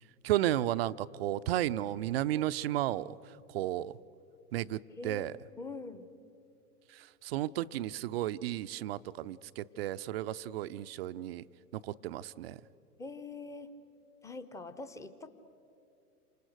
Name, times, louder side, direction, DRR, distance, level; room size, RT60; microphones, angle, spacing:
voice 1, 0.2-4.0 4.5-5.4 6.9-11.4 11.7-12.6, right 13 dB, 40° right, 14 dB, 0.5 m, -33 dB
voice 2, 5.0-5.3 5.6-6.1 13.0-13.7 14.2-15.3, left 3 dB, 5° left, 11 dB, 0.8 m, -43 dB
28.5 x 26.5 x 6.5 m, 2.7 s
figure-of-eight pair, 105°, 47 cm